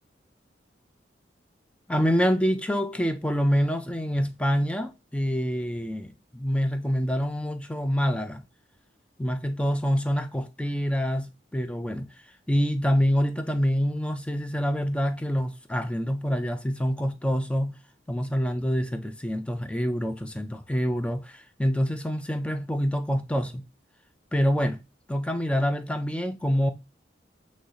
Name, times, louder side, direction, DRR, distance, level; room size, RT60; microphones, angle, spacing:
voice 1, 1.9-8.4 9.2-12.1 12.5-17.8 18.1-23.6 24.3-24.8 25.1-26.7, equal, 5° left, 0.3 m, -26 dB
3.1 x 2.8 x 3.8 m
head